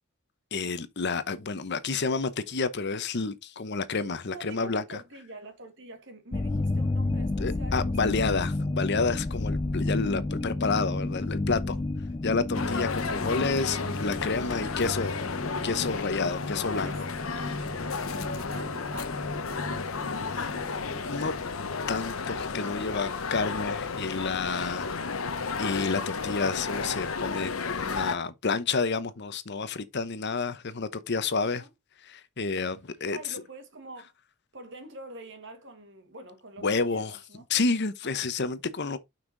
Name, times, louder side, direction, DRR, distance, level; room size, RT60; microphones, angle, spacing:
voice 1, 0.5-5.0 7.4-11.8 12.2-15.1 15.6-16.9 20.4-20.5 21.1-21.3 21.9-24.9 25.6-31.6 32.0-33.2 36.6-39.0, left 4 dB, 55° left, 0.9 m, -29 dB
voice 2, 4.3-8.4 14.4-15.3 16.7-17.0 17.3-20.7 31.4-31.7 33.1-34.1 34.5-37.4 38.0-38.3, right 2 dB, 60° right, 1.9 m, -46 dB
sound 1, 6.3-21.5, left 2 dB, 25° left, 0.4 m, -32 dB
sound 2, 12.5-28.2, left 4 dB, 85° left, 1.0 m, -33 dB
6.2 x 5.8 x 3.9 m
head